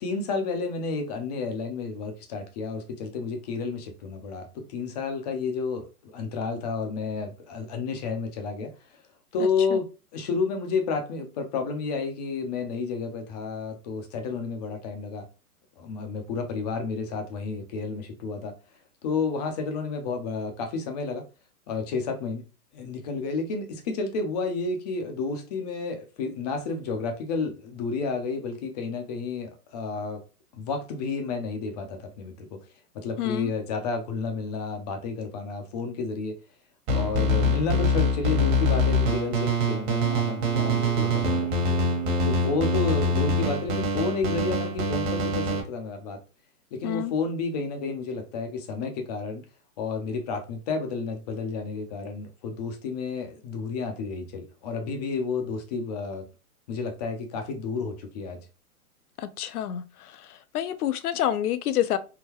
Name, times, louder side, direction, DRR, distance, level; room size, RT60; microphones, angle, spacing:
voice 1, 0.0-8.7 9.3-15.3 15.8-18.5 19.0-21.3 21.7-22.4 22.7-30.2 30.5-32.6 32.9-36.4 36.9-41.5 42.2-46.2 46.7-49.4 49.8-56.3 56.7-58.4, left 4 dB, 30° left, 0.5 m, -31 dB
voice 2, 33.2-33.5 46.8-47.1 59.2-59.8 60.5-62.0, left 11 dB, 70° left, 0.6 m, -27 dB
sound 1, 36.9-45.6, left 1 dB, 35° right, 1.2 m, -24 dB
sound 2, 40.0-43.8, right 9 dB, 80° right, 1.2 m, -37 dB
3.7 x 2.2 x 2.9 m
hypercardioid pair, 140°, 46 cm